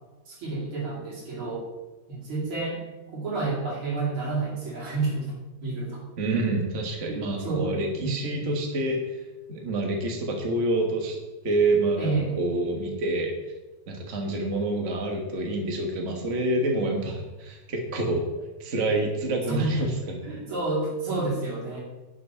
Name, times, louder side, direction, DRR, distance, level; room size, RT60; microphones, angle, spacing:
voice 1, 0.3-1.7 2.1-2.8 3.1-5.4 5.6-6.0 7.1-8.2 12.0-12.4 19.5-19.8 20.2-21.8, right 3 dB, 85° right, -3 dB, 3.4 m, -29 dB
voice 2, 6.2-9.2 9.5-11.2 11.4-13.3 13.9-18.3 18.6-20.4, right 2 dB, 40° right, 1 dB, 1.6 m, -27 dB
10.5 x 5.8 x 5.5 m, 1.1 s
omnidirectional pair, 2.2 m